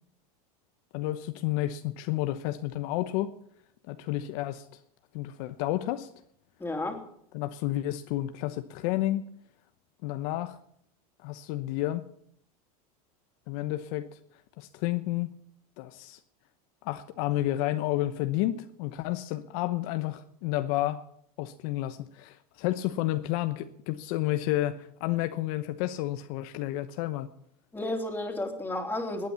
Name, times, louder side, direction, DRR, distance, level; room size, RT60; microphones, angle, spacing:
voice 1, 0.9-3.3 3.9-4.6 5.1-6.1 7.3-9.3 10.0-10.6 11.2-12.1 13.5-14.1 14.6-15.3 15.8-16.2 16.8-21.0 21.4-27.3, left 15 dB, 65° left, 9 dB, 1.0 m, -31 dB
voice 2, 6.6-7.0 27.7-29.3, left 1 dB, 10° left, 3 dB, 3.2 m, -32 dB
18.5 x 9.3 x 7.0 m, 0.69 s
supercardioid pair, 110°, 20 cm